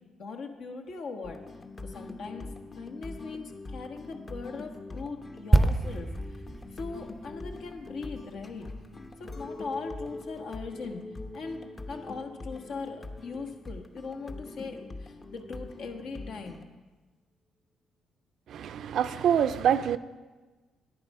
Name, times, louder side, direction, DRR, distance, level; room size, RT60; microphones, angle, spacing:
voice 1, 0.2-1.4 1.8-2.5 2.7-6.4 6.7-8.7 9.2-11.0 11.3-11.6 11.9-16.7, left 4 dB, 70° left, 1.3 m, -40 dB
sound 1, 1.2-16.6, left 2 dB, 35° left, 0.8 m, -44 dB
sound 2, 5.5-9.2 9.4-9.6, right 2 dB, 15° right, 0.5 m, -28 dB
Chink clink, 9.3-14.8, left 2 dB, 50° left, 1.6 m, -45 dB
voice 2, 18.5-20.0, right 9 dB, 70° right, 0.4 m, -25 dB
10.5 x 8.7 x 5.4 m
cardioid pair, 90°, 0 cm